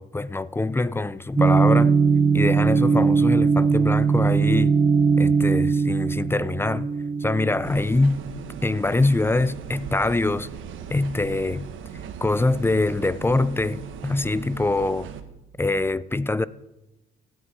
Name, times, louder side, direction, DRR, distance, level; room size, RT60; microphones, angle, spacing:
voice 1, 0.0-2.0 2.3-4.7 5.2-6.9 7.2-8.2 8.6-10.5 10.9-11.7 12.2-15.1 15.6-16.5, left 2 dB, 10° left, 0.4 m, -24 dB
sound 1, 1.4-8.2, right 5 dB, 25° right, 0.7 m, -20 dB
sound 2, 7.6-15.2, right 8 dB, 80° right, 1.1 m, -39 dB
15.5 x 8.3 x 5.0 m
cardioid pair, 90°, 20 cm